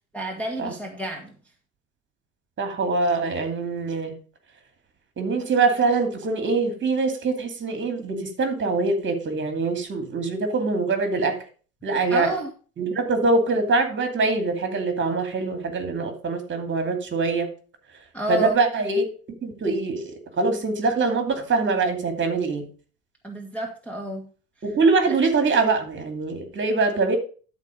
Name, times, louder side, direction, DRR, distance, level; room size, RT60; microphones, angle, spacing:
voice 1, 0.1-1.3 12.1-12.5 18.1-18.6 23.2-24.2 25.1-25.2, right 1 dB, 5° left, -1 dB, 1.6 m, -30 dB
voice 2, 2.6-4.1 5.2-11.4 11.8-12.3 12.8-17.5 18.3-19.1 19.4-20.1 20.4-22.6 24.6-27.2, right 3 dB, 25° right, 7 dB, 2.5 m, -23 dB
12.5 x 4.3 x 5.1 m, 0.38 s
hypercardioid pair, 85°, 43 cm